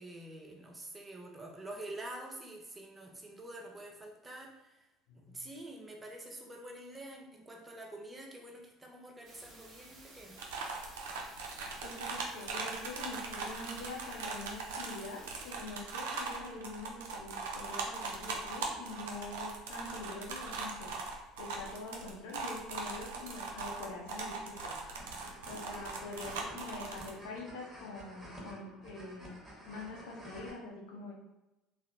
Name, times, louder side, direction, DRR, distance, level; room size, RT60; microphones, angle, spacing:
voice 1, 0.0-4.9 5.1-10.5, right 1 dB, 20° right, 1 dB, 0.6 m, -47 dB
voice 2, 5.1-5.5 11.8-20.9 21.4-24.7 25.2-31.1, left 3 dB, 70° left, -2 dB, 0.6 m, -45 dB
sound 1, 9.2-15.5, right 2 dB, 40° right, 0.9 m, -55 dB
sound 2, 10.4-27.1, right 4 dB, 75° right, 0.4 m, -40 dB
sound 3, 24.5-30.5, equal, ahead, 1.2 m, -51 dB
2.8 x 2.0 x 2.5 m, 0.99 s
hypercardioid pair, 65°, 0 cm